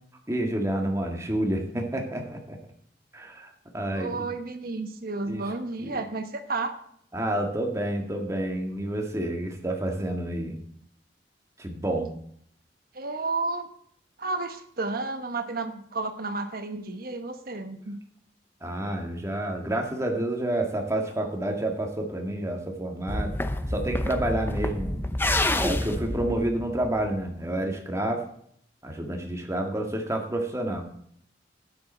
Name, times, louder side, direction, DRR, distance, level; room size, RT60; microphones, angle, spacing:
voice 1, 0.3-2.6 3.1-4.2 5.3-5.4 5.8-6.0 7.1-10.6 11.6-12.1 18.6-23.3 23.7-25.0 25.6-28.2 28.8-30.9, right 1 dB, 20° right, 2 dB, 1.9 m, -29 dB
voice 2, 3.9-6.8 12.9-13.7 14.2-18.0, right 3 dB, 60° right, 8 dB, 1.2 m, -32 dB
sound 1, 23.1-27.3, left 1 dB, 15° left, 0.7 m, -28 dB
12.0 x 9.7 x 4.4 m, 0.65 s
head